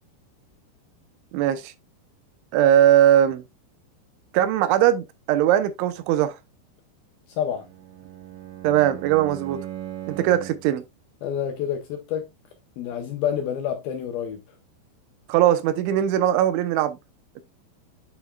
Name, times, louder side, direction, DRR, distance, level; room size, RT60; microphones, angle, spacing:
voice 1, 1.3-1.7 2.5-3.4 4.3-6.4 8.6-9.6 10.1-10.8 15.3-17.0, right 11 dB, 85° right, 3.3 m, -20 dB
voice 2, 7.3-7.6 11.2-12.3 12.8-14.4, left 9 dB, 75° left, 2.3 m, -28 dB
Bowed string instrument, 7.6-10.8, right 12 dB, 60° right, 3.1 m, -38 dB
8.9 x 6.6 x 2.3 m
omnidirectional pair, 5.4 m